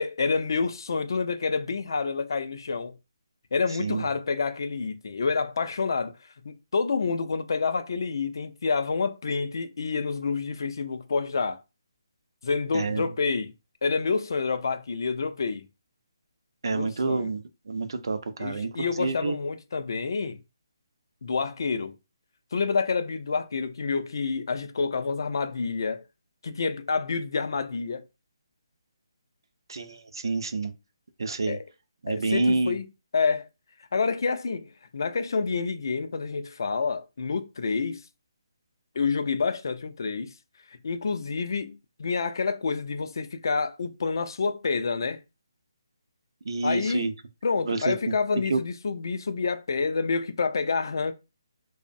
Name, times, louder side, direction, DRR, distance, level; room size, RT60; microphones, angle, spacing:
voice 1, 0.0-3.0 3.5-6.1 6.4-11.6 12.4-13.5 13.8-15.7 16.7-17.3 18.4-20.4 21.2-22.0 22.5-26.0 26.4-28.0 31.5-31.6 32.1-32.9 33.1-33.5 33.9-34.7 34.9-38.0 39.0-40.3 40.8-45.2 46.6-47.1 47.4-51.1, left 4 dB, 55° left, 0.3 m, -28 dB
voice 2, 12.7-13.1 16.6-19.4 29.7-30.7 31.2-31.6 32.0-32.8 46.4-47.1 47.6-48.1 48.5-48.6, right 3 dB, 65° right, 0.4 m, -28 dB
2.5 x 2.0 x 2.5 m
hypercardioid pair, 170°, 2 cm